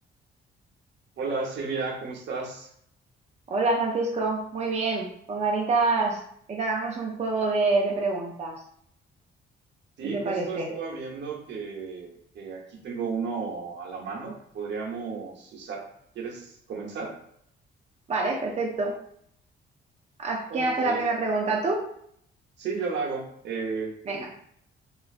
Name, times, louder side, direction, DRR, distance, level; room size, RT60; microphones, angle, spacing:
voice 1, 1.2-2.7 10.0-15.9 16.1-17.2 20.5-21.1 22.6-24.0, right 4 dB, 65° right, -1 dB, 0.8 m, -33 dB
voice 2, 3.5-6.2 6.5-8.6 10.0-10.7 18.1-18.9 20.2-21.8 24.1-24.3, right 3 dB, 35° right, -1 dB, 0.5 m, -26 dB
3.0 x 2.4 x 2.4 m, 0.67 s
cardioid pair, 90°, 20 cm